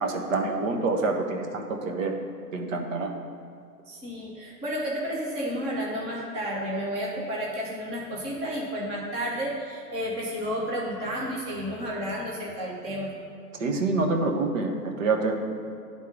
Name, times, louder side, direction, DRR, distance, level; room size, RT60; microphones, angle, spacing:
voice 1, 0.0-2.2 2.5-3.1 13.6-15.4, right 3 dB, 50° right, 3 dB, 1.0 m, -27 dB
voice 2, 3.9-13.1, equal, 10° right, -4 dB, 0.7 m, -31 dB
9.3 x 3.7 x 5.2 m, 2.4 s
hypercardioid pair, 150°, 49 cm